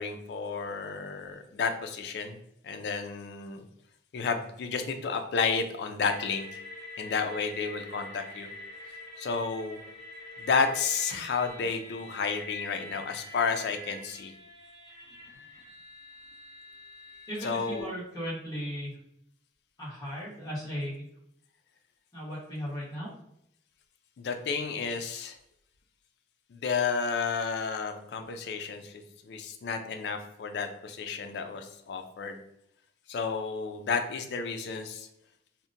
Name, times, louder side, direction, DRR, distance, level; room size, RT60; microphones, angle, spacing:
voice 1, 0.0-2.4 2.6-3.6 4.1-6.5 7.0-8.5 9.2-9.8 10.4-14.3 17.4-17.9 24.2-25.4 26.5-32.4 33.1-35.1, left 5 dB, 60° left, 6 dB, 0.3 m, -31 dB
sound 1, 6.1-17.8, left 1 dB, 50° right, 0.7 m, -45 dB
voice 2, 17.3-19.0 19.8-21.1 22.1-23.1, equal, 20° left, -8 dB, 1.1 m, -36 dB
2.7 x 2.1 x 2.5 m, 0.74 s
head